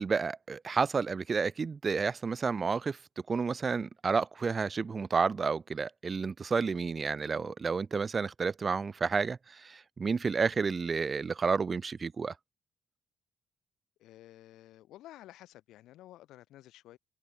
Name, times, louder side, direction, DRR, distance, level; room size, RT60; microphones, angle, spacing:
voice 1, 0.0-3.0 3.3-12.3, right 5 dB, 35° right, 0.3 m, -30 dB
voice 2, 14.0-17.0, left 14 dB, 85° left, 4.5 m, -53 dB
cardioid pair, 90°, 0 cm